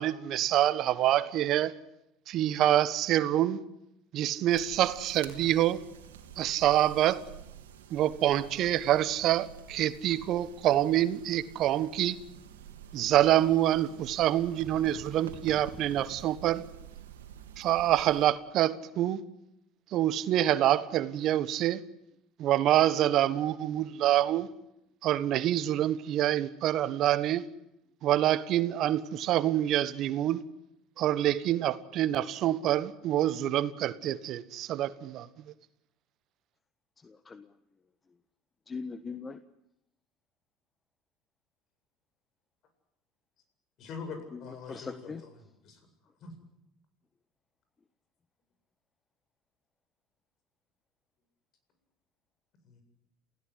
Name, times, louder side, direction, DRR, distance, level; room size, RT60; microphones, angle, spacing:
voice 1, 0.0-1.7 2.3-3.6 4.1-5.8 6.4-7.2 7.9-12.2 12.9-16.6 17.6-19.2 19.9-21.8 22.4-24.5 25.0-27.5 28.0-30.4 31.0-35.3, right 12 dB, 55° right, 1.4 m, -26 dB
fire match, 4.5-18.3, right 9 dB, 85° right, 3.0 m, -48 dB
voice 2, 37.0-37.5 38.7-39.4 44.3-45.2, left 4 dB, 25° left, 1.4 m, -41 dB
voice 3, 43.8-45.3 45.6-45.9 46.2-46.3 52.6-52.8, left 5 dB, 55° left, 7.9 m, -43 dB
29.0 x 16.5 x 10.0 m
hypercardioid pair, 75°, 0 cm